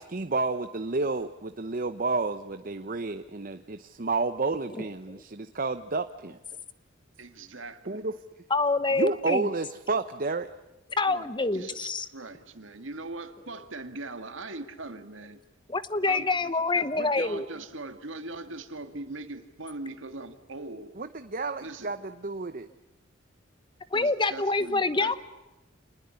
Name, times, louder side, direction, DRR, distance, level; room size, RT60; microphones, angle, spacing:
voice 1, 0.0-6.4 7.9-8.1 9.0-10.5 17.0-17.1 21.0-22.7, right 3 dB, 45° right, 0.8 m, -30 dB
voice 2, 7.2-8.1 11.1-15.4 16.0-20.9 21.6-21.9 23.9-25.2, right 2 dB, 75° right, 2.0 m, -41 dB
voice 3, 8.5-9.5 11.0-12.1 15.7-17.4 23.9-25.1, left 3 dB, 25° left, 1.0 m, -26 dB
28.0 x 20.0 x 9.7 m
head